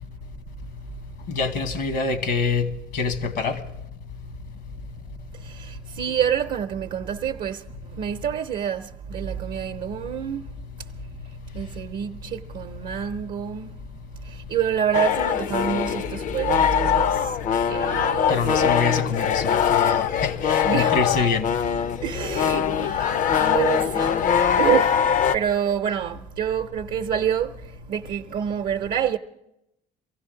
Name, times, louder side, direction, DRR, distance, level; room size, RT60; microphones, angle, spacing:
voice 1, 1.3-2.7 2.9-3.6 18.3-21.5, left 5 dB, 75° left, 1.4 m, -25 dB
voice 2, 5.3-13.8 14.2-17.4 17.7-18.8 20.6-21.0 22.0-25.0 25.3-29.2, right 9 dB, 65° right, 0.7 m, -28 dB
sound 1, 14.9-25.4, left 8 dB, 50° left, 0.5 m, -22 dB
24.0 x 16.0 x 3.8 m
cardioid pair, 110°, 17 cm